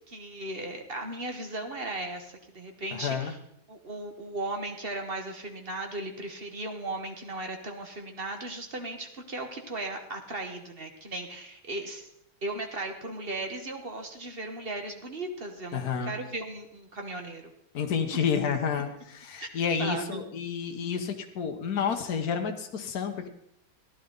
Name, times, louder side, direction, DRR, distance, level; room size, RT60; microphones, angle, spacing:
voice 1, 0.1-3.4 3.7-12.1 12.4-17.5 19.4-19.5 19.8-20.2, right 2 dB, 35° right, 4 dB, 1.4 m, -36 dB
voice 2, 2.9-3.3 15.7-16.1 17.7-23.3, left 6 dB, 55° left, 5 dB, 1.6 m, -30 dB
15.5 x 11.0 x 4.0 m, 0.76 s
omnidirectional pair, 2.1 m